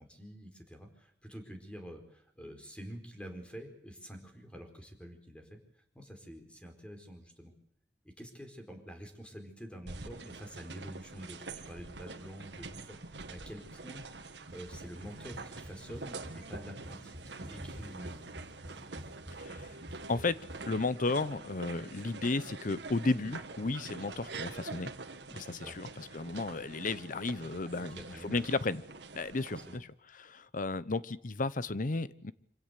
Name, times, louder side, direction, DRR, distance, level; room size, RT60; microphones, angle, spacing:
voice 1, 0.0-5.6 5.9-7.5 8.0-14.0 14.5-18.2 25.6-25.8 27.6-28.5 29.6-29.8, equal, 5° left, 4 dB, 4.4 m, -47 dB
sound 1, 9.9-29.8, right 3 dB, 80° right, 1.8 m, -46 dB
sound 2, 14.5-20.8, equal, 30° right, 7.1 m, -50 dB
voice 2, 20.6-24.9 25.3-28.8 29.1-29.9 30.2-32.3, left 3 dB, 50° left, 17 dB, 0.8 m, -33 dB
26.0 x 16.5 x 8.3 m, 0.74 s
head